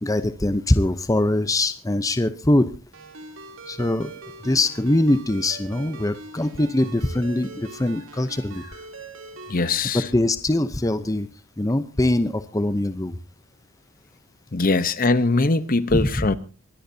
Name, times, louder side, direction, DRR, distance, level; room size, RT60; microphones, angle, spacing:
voice 1, 0.0-2.7 3.7-4.1 4.4-8.6 9.9-11.3 11.6-13.2 15.9-16.1, left 1 dB, 15° left, 0.7 m, -22 dB
Ringtone, 2.9-9.8, right 3 dB, 70° right, 3.1 m, -42 dB
voice 2, 9.5-10.1 14.5-16.4, left 3 dB, 40° left, 0.9 m, -21 dB
23.5 x 17.5 x 2.8 m
head